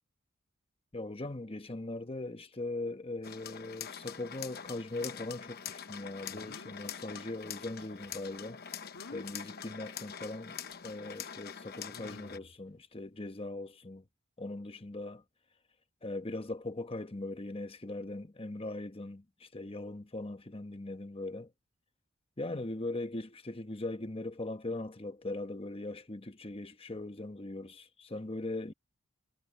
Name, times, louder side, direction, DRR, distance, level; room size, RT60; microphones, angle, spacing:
voice 1, 0.9-8.6 9.1-14.0 14.4-15.2 16.0-21.5 22.4-28.7, left 2 dB, 30° left, 1.1 m, -40 dB
sound 1, 3.2-12.4, left 8 dB, 50° left, 1.0 m, -44 dB
sound 2, 6.3-6.8 8.9-9.3 10.7-10.8 11.9-12.6, left 2 dB, 80° left, 1.7 m, -49 dB
head